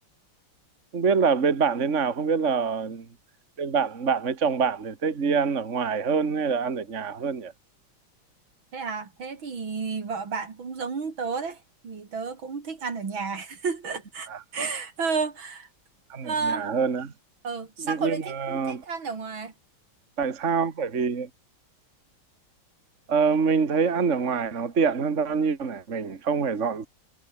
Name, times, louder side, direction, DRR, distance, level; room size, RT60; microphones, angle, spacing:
voice 1, 0.9-3.1 3.6-7.5 14.3-14.4 16.1-17.1 17.8-18.8 20.2-21.3 23.1-26.9, right 5 dB, 35° right, 2.1 m, -25 dB
voice 2, 8.7-15.7 16.2-16.7 17.4-19.5, right 5 dB, 70° right, 3.7 m, -32 dB
omnidirectional pair, 2.3 m